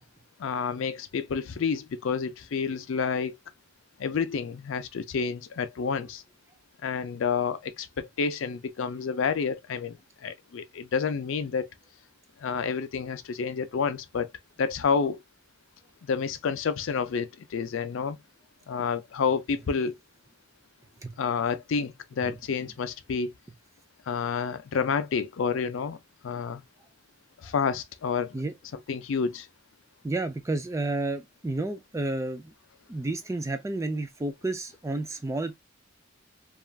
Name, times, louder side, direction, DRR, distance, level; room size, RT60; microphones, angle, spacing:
voice 1, 0.4-3.4 4.0-6.2 6.8-11.7 12.4-14.3 14.6-15.2 16.0-18.2 18.7-19.9 21.2-23.3 24.1-26.0 26.2-26.6 27.4-28.4 28.9-29.5, left 5 dB, 65° left, 0.4 m, -29 dB
voice 2, 30.0-32.5 32.9-35.6, right 2 dB, 15° right, 0.3 m, -31 dB
3.2 x 2.4 x 2.2 m
head